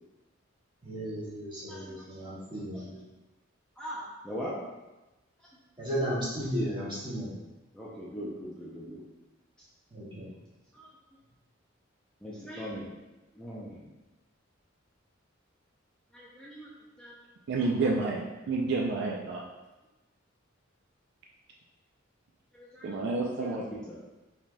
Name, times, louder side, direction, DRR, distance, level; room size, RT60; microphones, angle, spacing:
voice 1, 0.8-3.0 5.8-7.3 9.9-10.3, equal, 25° right, -9 dB, 1.5 m, -34 dB
voice 2, 1.7-2.9 3.8-4.6 5.5-5.6 7.7-9.0 9.6-9.7 10.7-10.9 12.2-12.9 13.3-13.9 16.1-16.7 17.0-17.2 22.5-23.1 23.4-24.0, equal, 5° left, -7 dB, 0.4 m, -41 dB
voice 3, 17.5-19.4 22.8-23.6, right 3 dB, 60° right, -1 dB, 0.4 m, -29 dB
4.8 x 2.8 x 2.2 m, 1.1 s
head